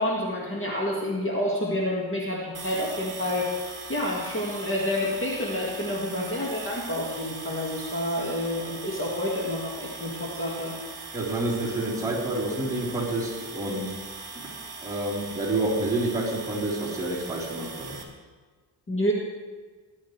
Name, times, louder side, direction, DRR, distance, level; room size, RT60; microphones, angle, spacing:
voice 1, 0.0-3.5 3.9-10.8 18.9-19.1, left 1 dB, 25° left, -3 dB, 2.1 m, -28 dB
sound 1, 2.5-18.0, right 4 dB, 45° right, 2.8 m, -40 dB
voice 2, 11.1-13.9 14.3-14.5 14.8-18.0, right 2 dB, 5° right, -8 dB, 4.4 m, -28 dB
20.5 x 11.0 x 3.4 m, 1.4 s
cardioid pair, 135°, 45 cm